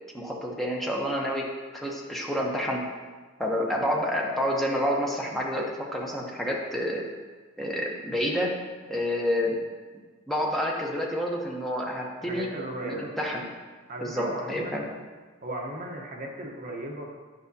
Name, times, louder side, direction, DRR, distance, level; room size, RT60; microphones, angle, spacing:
voice 1, 0.1-1.5 1.7-2.9 3.4-7.1 7.6-8.6 8.9-9.6 10.3-12.5 12.8-13.4 14.0-14.8, equal, ahead, -2 dB, 0.7 m, -28 dB
voice 2, 12.2-13.1 13.9-14.9 15.4-17.0, right 1 dB, 40° right, -1 dB, 0.9 m, -36 dB
8.9 x 5.5 x 2.7 m, 1.4 s
head